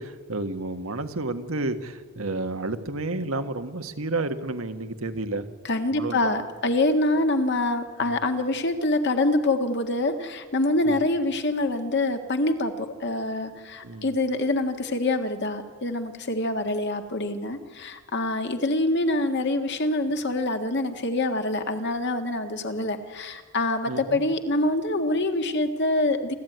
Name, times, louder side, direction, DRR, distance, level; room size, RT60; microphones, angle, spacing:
voice 1, 0.0-5.4 5.9-6.3 8.1-8.2 10.9-11.0 13.8-14.1 23.9-24.2, right 2 dB, 85° right, 9 dB, 1.5 m, -31 dB
voice 2, 5.6-26.3, left 2 dB, 60° left, 6 dB, 1.7 m, -25 dB
29.0 x 12.5 x 9.3 m, 1.5 s
head